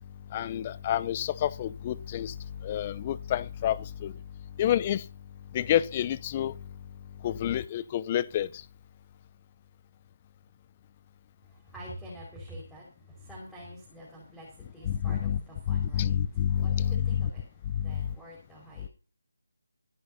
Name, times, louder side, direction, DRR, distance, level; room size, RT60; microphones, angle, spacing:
voice 1, 0.3-2.3 2.6-4.1 4.6-5.0 5.5-6.5 7.2-8.5 14.9-15.4 15.7-17.3 17.8-17.9, left 10 dB, 25° left, 0.6 m, -28 dB
voice 2, 11.5-17.4 17.7-18.9, equal, ahead, 5.0 m, -47 dB
24.5 x 11.0 x 2.8 m
figure-of-eight pair, 160°, 0 cm